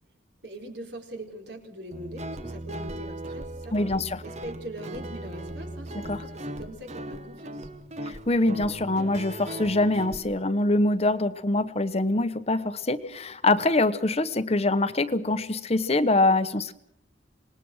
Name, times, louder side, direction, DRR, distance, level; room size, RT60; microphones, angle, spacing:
voice 1, 0.4-3.8 4.2-7.7, right 1 dB, 65° right, 3 dB, 4.6 m, -42 dB
Guitar, 1.9-10.2, right 1 dB, 40° right, 1.2 m, -38 dB
voice 2, 3.7-4.2 6.1-6.2 8.0-16.7, left 2 dB, 35° left, 11 dB, 1.0 m, -24 dB
26.5 x 20.0 x 6.3 m, 0.71 s
head